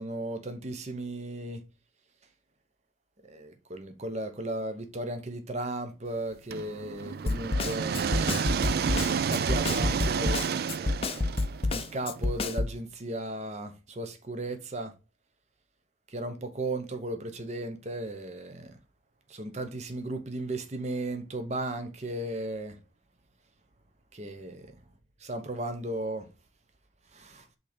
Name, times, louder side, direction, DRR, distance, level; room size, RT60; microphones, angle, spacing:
voice 1, 0.0-1.6 3.3-8.4 9.2-10.4 11.7-14.9 16.1-18.8 19.3-22.8 24.1-24.7 25.2-26.3 27.1-27.4, right 2 dB, 35° right, 0.9 m, -35 dB
sound 1, 6.5-12.4, right 6 dB, 55° right, 0.3 m, -30 dB
Snare drum, 7.3-12.8, left 3 dB, 30° left, 0.5 m, -29 dB
5.4 x 4.0 x 5.1 m
head